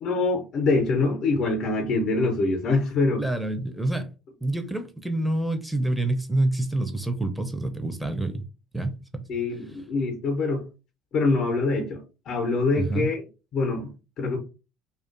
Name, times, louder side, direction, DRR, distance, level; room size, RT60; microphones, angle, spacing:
voice 1, 0.0-3.2 9.3-10.6 11.1-13.2 13.5-14.4, left 3 dB, 50° left, 0.5 m, -24 dB
voice 2, 3.2-4.1 4.4-8.4 8.7-8.9 9.7-9.8 12.8-13.1, right 2 dB, ahead, 0.4 m, -27 dB
2.4 x 2.2 x 2.4 m
hypercardioid pair, 65°, 0 cm